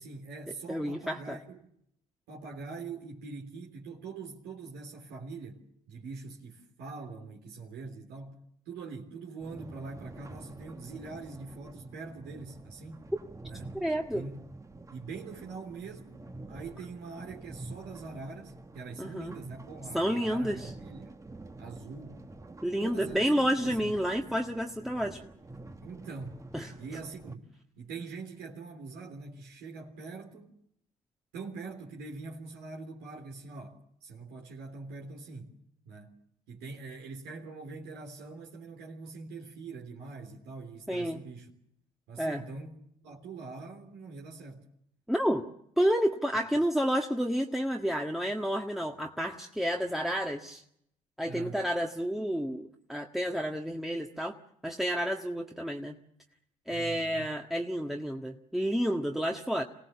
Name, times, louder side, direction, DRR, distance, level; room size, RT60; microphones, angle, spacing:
voice 1, 0.0-1.7 2.3-13.1 13.5-13.8 14.1-14.4 14.9-21.1 21.6-22.2 22.8-23.3 23.6-24.0 25.8-26.4 26.8-30.5 31.3-35.5 35.9-36.1 36.5-41.5 42.1-44.7 51.3-51.6 56.7-57.3, right 4 dB, 70° right, 3.5 m, -43 dB
voice 2, 0.7-1.4 13.7-14.2 19.0-19.3 19.9-20.7 22.6-25.2 26.5-26.7 40.9-41.2 42.2-42.4 45.1-45.4 45.8-50.6 51.2-54.3 54.6-56.0 56.7-59.6, equal, ahead, 1.7 m, -30 dB
sound 1, 9.4-27.4, right 2 dB, 20° right, 1.7 m, -48 dB
27.0 x 18.0 x 7.3 m
hypercardioid pair, 55°, 17 cm